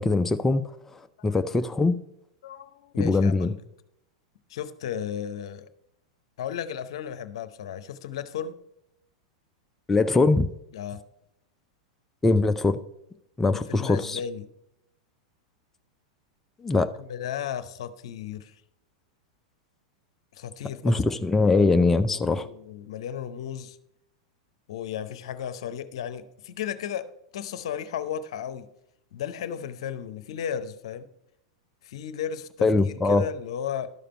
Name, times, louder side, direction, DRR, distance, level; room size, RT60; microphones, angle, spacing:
voice 1, 0.0-2.0 3.0-3.5 9.9-10.5 12.2-12.8 13.4-14.2 16.6-16.9 20.8-22.5 32.6-33.3, left 3 dB, 10° left, 0.4 m, -22 dB
voice 2, 2.4-3.6 4.5-5.7 6.4-8.5 10.7-11.0 13.5-14.5 17.0-18.6 20.3-21.0 22.1-23.8 24.7-27.1 27.3-28.7 29.1-31.1 31.8-33.9, left 9 dB, 65° left, 0.7 m, -34 dB
12.0 x 5.1 x 4.3 m
hypercardioid pair, 95°, 3 cm